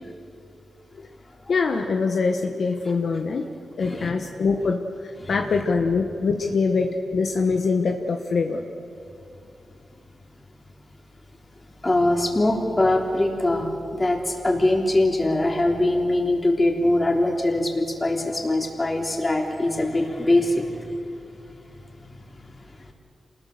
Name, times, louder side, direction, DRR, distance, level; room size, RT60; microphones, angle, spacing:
voice 1, 1.5-3.4 3.8-8.6, left 4 dB, 60° left, 3 dB, 1.2 m, -24 dB
voice 2, 3.8-4.1 5.2-5.4 11.8-20.6, left 1 dB, 25° left, 1 dB, 3.4 m, -22 dB
27.5 x 20.0 x 6.7 m, 2.6 s
cardioid pair, 80°, 0 cm